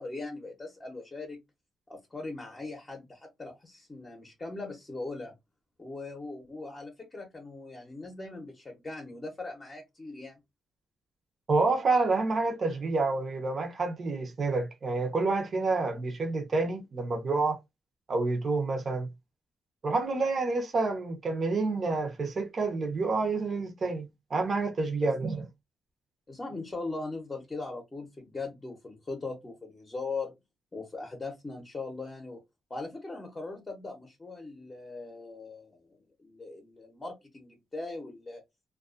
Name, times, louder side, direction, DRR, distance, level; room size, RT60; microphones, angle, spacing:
voice 1, 0.0-1.4 1.9-5.3 5.8-10.4 25.0-25.1 26.3-30.4 30.7-32.4 32.7-38.4, left 3 dB, 25° left, 0.7 m, -40 dB
voice 2, 11.5-17.6 18.1-19.1 19.8-25.4, right 3 dB, 45° right, 0.7 m, -28 dB
2.3 x 2.2 x 2.4 m
cardioid pair, 100°, 0 cm